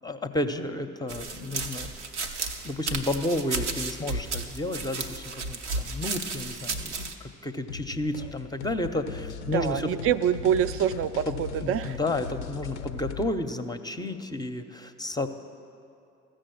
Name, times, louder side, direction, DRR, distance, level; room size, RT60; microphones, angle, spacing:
voice 1, 0.0-1.9 2.6-9.9 11.3-15.3, left 1 dB, 10° left, 8 dB, 0.6 m, -31 dB
sound 1, 1.1-7.1, right 3 dB, 85° right, 0.6 m, -33 dB
sound 2, 7.7-13.3, left 6 dB, 80° left, 0.5 m, -38 dB
voice 2, 9.5-12.0, right 9 dB, 45° right, 14 dB, 0.5 m, -26 dB
14.5 x 6.5 x 7.7 m, 2.6 s
figure-of-eight pair, 45°, 34 cm